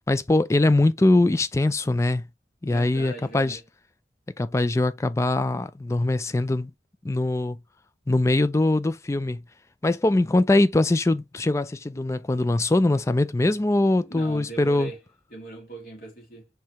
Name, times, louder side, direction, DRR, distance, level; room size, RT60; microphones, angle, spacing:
voice 1, 0.1-2.2 2.6-3.6 4.4-6.7 7.0-7.6 8.1-9.4 9.8-14.9, left 2 dB, 15° left, 0.3 m, -22 dB
voice 2, 2.6-3.6 13.9-15.0 15.3-16.5, right 2 dB, 50° left, 2.6 m, -40 dB
4.7 x 3.3 x 2.9 m
head